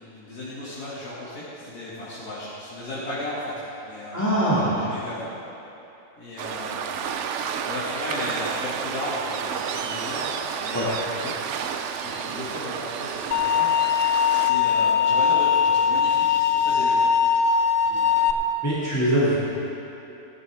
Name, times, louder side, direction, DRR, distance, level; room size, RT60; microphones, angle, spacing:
voice 1, 0.0-5.3 6.2-7.3 7.6-10.3 10.6-17.1 17.8-18.6, left 1 dB, 90° left, -10 dB, 2.8 m, -35 dB
voice 2, 4.1-4.7 10.7-10.8 18.6-19.4, right 1 dB, 10° left, -10 dB, 2.3 m, -22 dB
Waves surf, 6.4-14.5, right 7 dB, 65° right, 0.8 m, -31 dB
sound 1, 13.3-18.3, left 7 dB, 55° left, 0.7 m, -20 dB
16.5 x 12.0 x 3.5 m, 2.9 s
omnidirectional pair, 1.6 m